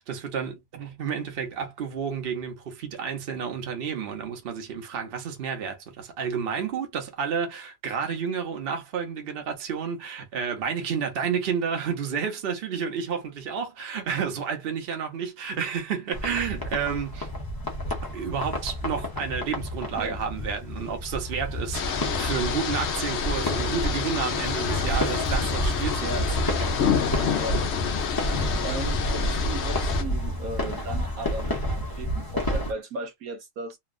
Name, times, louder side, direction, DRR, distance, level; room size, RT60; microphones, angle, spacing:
voice 1, 0.0-17.3 18.1-26.2, right 6 dB, 45° right, 0.9 m, -31 dB
sound 1, 16.1-32.7, equal, 30° left, 0.4 m, -30 dB
sound 2, 21.7-30.0, left 7 dB, 60° left, 0.8 m, -29 dB
voice 2, 28.6-33.8, right 2 dB, 70° right, 1.1 m, -36 dB
3.0 x 2.3 x 2.4 m
omnidirectional pair, 1.7 m